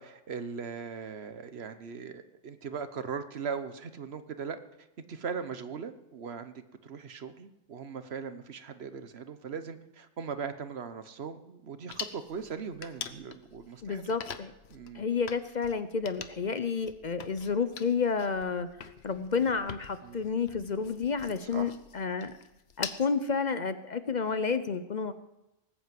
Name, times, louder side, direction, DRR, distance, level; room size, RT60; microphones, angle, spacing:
voice 1, 0.0-4.6 5.1-6.5 6.8-14.0 14.7-15.1 20.0-20.2 21.5-21.7, right 6 dB, 70° right, 11 dB, 1.2 m, -39 dB
sound 1, 11.9-23.1, left 7 dB, 75° left, 1.1 m, -45 dB
voice 2, 13.8-14.5 14.9-18.7 19.0-22.3 22.8-25.1, left 5 dB, 45° left, 12 dB, 0.8 m, -30 dB
19.0 x 8.6 x 7.7 m, 0.92 s
omnidirectional pair, 1.1 m